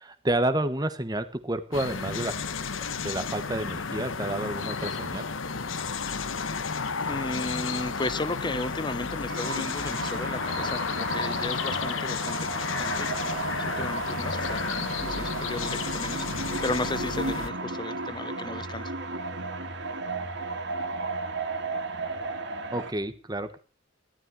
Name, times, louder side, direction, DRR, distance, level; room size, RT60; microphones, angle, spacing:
voice 1, 0.0-2.3 2.9-5.2 22.7-23.6, right 1 dB, 20° right, 10 dB, 1.3 m, -30 dB
sound 1, 1.7-17.5, left 5 dB, 85° left, 1.2 m, -32 dB
voice 2, 7.0-18.9, left 2 dB, 25° left, 15 dB, 0.8 m, -35 dB
sound 2, 9.3-22.9, right 3 dB, 60° right, 2.7 m, -34 dB
15.5 x 12.5 x 6.3 m, 0.36 s
head